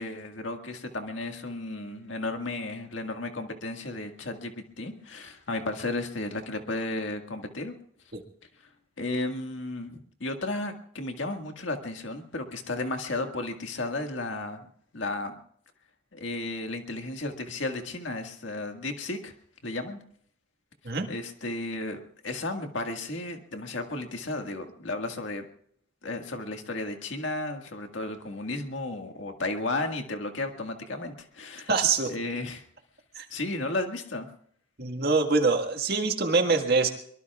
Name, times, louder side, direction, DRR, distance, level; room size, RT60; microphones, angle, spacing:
voice 1, 0.0-7.8 9.0-14.7 14.9-15.4 16.1-19.3 19.6-20.0 21.1-25.5 26.0-31.7 32.1-32.6 33.3-34.3, left 2 dB, 70° left, 4 dB, 1.8 m, -34 dB
voice 2, 31.7-32.1 33.2-33.3 34.8-36.9, right 4 dB, 50° right, 5 dB, 1.8 m, -24 dB
24.0 x 23.0 x 2.4 m, 0.63 s
head